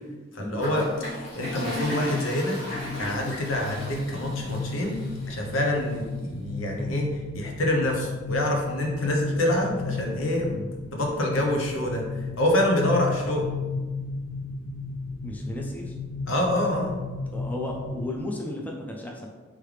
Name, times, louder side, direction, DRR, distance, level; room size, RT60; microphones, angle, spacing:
voice 1, 0.3-2.6 3.0-5.0 5.3-13.5 16.3-16.9, left 1 dB, 85° left, 0 dB, 0.8 m, -26 dB
Toilet flush, 0.5-5.6, left 1 dB, 65° left, 1.5 m, -35 dB
sound 1, 2.7-18.2, left 3 dB, 45° right, 0.6 m, -34 dB
voice 2, 15.2-15.9 17.3-19.3, left 1 dB, 10° left, 0 dB, 0.4 m, -34 dB
3.6 x 3.2 x 3.3 m, 1.3 s
head